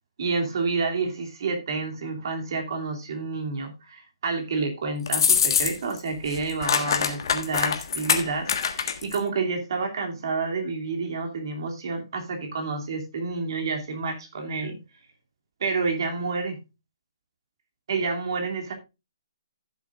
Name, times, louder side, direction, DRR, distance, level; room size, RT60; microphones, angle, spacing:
voice 1, 0.2-14.8 15.6-16.6 17.9-18.7, right 4 dB, 50° right, 3 dB, 2.8 m, -29 dB
sound 1, 5.1-6.0 6.3-9.2, left 7 dB, 50° left, 1.6 m, -24 dB
15.0 x 7.3 x 2.5 m, 0.27 s
hypercardioid pair, 165°, 3 cm